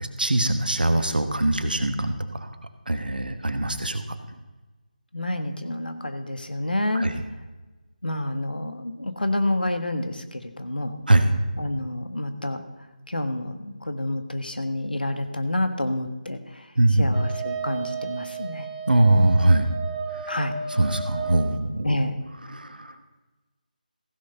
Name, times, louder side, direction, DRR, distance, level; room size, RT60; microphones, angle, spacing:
voice 1, 0.0-2.1 2.9-4.0 7.0-7.1 11.1-11.3 16.8-17.1 18.9-19.7 20.8-21.9 22.5-22.7, right 1 dB, 75° right, 8 dB, 1.4 m, -21 dB
voice 2, 5.1-7.0 8.0-11.0 11.6-12.6 13.1-18.7 20.3-20.6 21.8-22.2, left 1 dB, 80° left, 7 dB, 1.4 m, -28 dB
Wind instrument woodwind instrument, 17.1-21.5, right 6 dB, 15° right, 1.6 m, -33 dB
15.5 x 6.6 x 5.6 m, 1.2 s
figure-of-eight pair, 160°, 5 cm